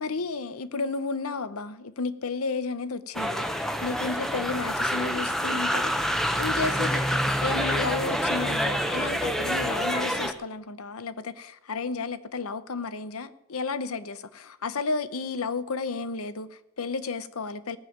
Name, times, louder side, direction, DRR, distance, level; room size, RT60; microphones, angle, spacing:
voice 1, 0.0-3.5 3.8-17.8, left 4 dB, 90° left, 0.8 m, -32 dB
sound 1, 3.1-10.3, equal, ahead, 0.8 m, -27 dB
17.5 x 7.3 x 7.2 m
head